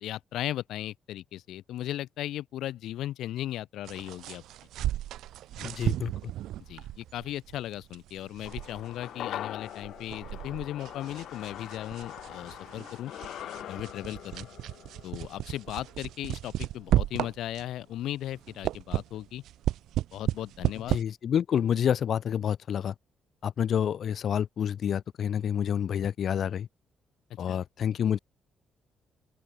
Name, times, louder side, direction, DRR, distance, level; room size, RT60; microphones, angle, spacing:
voice 1, 0.0-4.4 5.6-5.7 6.7-13.1 13.7-14.5 15.0-19.4 20.1-21.0 27.5-27.6, left 13 dB, 80° left, 0.5 m, -37 dB
sound 1, 3.9-17.8 18.2-21.0, right 13 dB, 80° right, 1.2 m, -34 dB
voice 2, 5.6-6.3 20.9-22.9 23.4-26.7 27.4-28.2, left 8 dB, 45° left, 0.9 m, -28 dB
sound 2, 8.5-17.0 17.2-17.3, left 11 dB, 65° left, 1.6 m, -43 dB
open air
cardioid pair, 170°, 0 cm